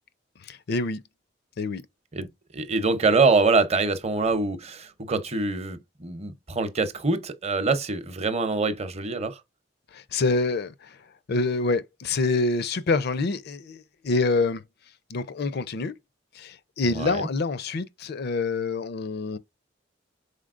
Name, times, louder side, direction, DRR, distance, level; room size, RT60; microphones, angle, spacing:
voice 1, 0.5-1.0 1.6-1.8 9.9-10.9 11.3-14.6 15.1-15.9 16.4-19.4, left 3 dB, 60° left, 0.5 m, -26 dB
voice 2, 2.1-9.4 16.9-17.3, right 3 dB, 35° right, 0.7 m, -25 dB
5.1 x 4.0 x 2.4 m
head